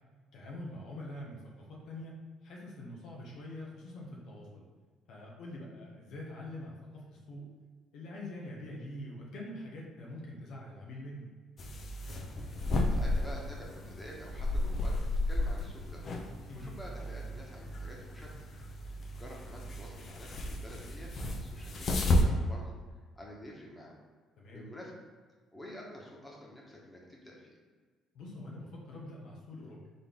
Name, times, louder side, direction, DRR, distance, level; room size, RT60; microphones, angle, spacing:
voice 1, 0.3-1.4 1.7-2.2 2.4-4.6 5.1-7.5 7.9-11.3 16.5-16.8 24.4-24.6 28.1-29.8, left 1 dB, 65° left, -3 dB, 1.1 m, -44 dB
sound 1, 11.6-22.2, left 1 dB, 50° left, 0.8 m, -33 dB
voice 2, 12.9-16.0 16.5-18.4 19.2-22.7 23.1-23.9 24.5-24.9 25.5-27.6, left 1 dB, 15° left, -3 dB, 1.5 m, -49 dB
4.0 x 3.6 x 3.8 m, 1.5 s
hypercardioid pair, 60°, 0 cm